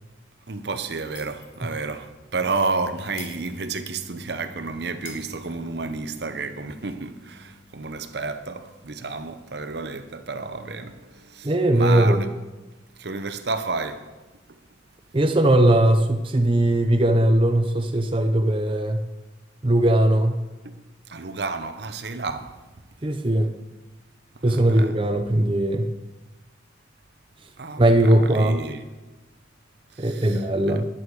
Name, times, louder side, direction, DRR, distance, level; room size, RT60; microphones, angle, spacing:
voice 1, 0.5-12.3 13.0-14.1 14.5-14.6 20.6-20.8 21.1-22.6 24.3-24.9 27.6-28.8 29.9-30.4 30.7-30.8, right 3 dB, 60° right, 0.8 m, -31 dB
Shatter, 1.2-1.7 2.0-2.2 3.2-4.2 5.1-6.1, left 6 dB, 90° left, 2.3 m, -45 dB
sound 1, 2.3-14.6 14.9-15.2 17.4-17.5, left 2 dB, 55° left, 3.4 m, -49 dB
voice 2, 11.4-12.2 15.1-19.0 19.6-20.4 23.0-23.5 24.4-25.9 27.8-28.6 30.0-30.8, right 1 dB, 30° right, 0.7 m, -19 dB
13.5 x 10.5 x 4.8 m
head